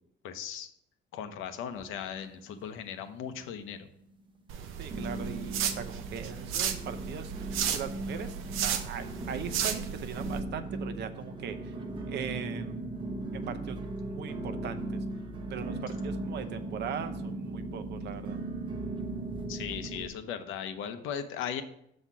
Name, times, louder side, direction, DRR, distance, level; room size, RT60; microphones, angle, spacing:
voice 1, 0.2-0.7 1.1-3.9 19.5-21.6, left 8 dB, 75° left, 8 dB, 0.8 m, -38 dB
sound 1, 1.7-2.7 2.9-3.6 4.1-4.2 4.9-20.1, right 2 dB, 25° right, 0.8 m, -38 dB
sound 2, 4.5-10.4, right 8 dB, 90° right, 0.7 m, -34 dB
voice 2, 4.8-11.7 12.1-12.8 13.3-15.0 15.5-18.4, right 8 dB, 55° right, 10 dB, 0.7 m, -40 dB
7.0 x 4.3 x 6.0 m, 0.74 s
cardioid pair, 155°, 21 cm